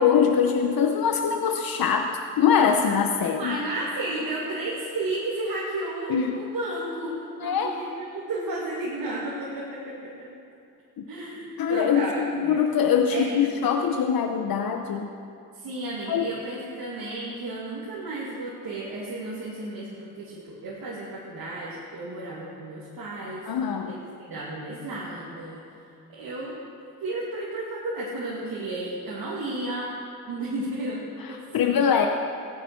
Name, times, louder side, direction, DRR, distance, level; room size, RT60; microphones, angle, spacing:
voice 1, 0.0-3.6 6.1-6.4 7.4-7.7 11.0-11.1 11.6-15.1 16.1-16.3 23.5-24.0 31.2-32.1, left 7 dB, 75° left, 5 dB, 0.9 m, -23 dB
voice 2, 3.4-10.3 11.1-12.6 13.1-13.5 15.5-23.4 23.9-25.6 26.1-26.5 27.0-29.9 30.3-31.9, right 2 dB, 80° right, -6 dB, 2.5 m, -33 dB
15.5 x 9.8 x 6.4 m, 2.7 s
cardioid pair, 55°, 36 cm